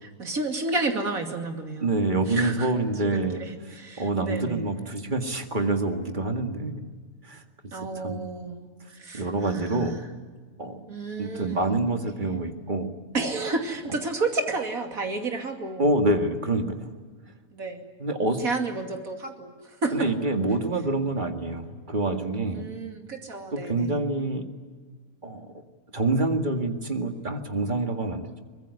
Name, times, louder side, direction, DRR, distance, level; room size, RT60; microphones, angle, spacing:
voice 1, 0.0-2.7 3.1-4.6 7.7-8.7 9.0-10.1 10.9-11.8 13.1-15.9 17.5-17.9 18.4-20.1 22.5-24.0, right 3 dB, 80° right, 4 dB, 3.1 m, -31 dB
voice 2, 1.8-3.4 4.0-6.9 7.3-7.4 8.0-8.2 9.1-10.0 10.6-10.9 11.2-12.9 15.8-16.9 18.0-18.4 19.9-22.6 23.5-24.5 25.2-25.5 25.9-28.4, right 2 dB, 35° right, 6 dB, 2.1 m, -26 dB
24.0 x 20.5 x 9.7 m, 1.5 s
omnidirectional pair, 1.5 m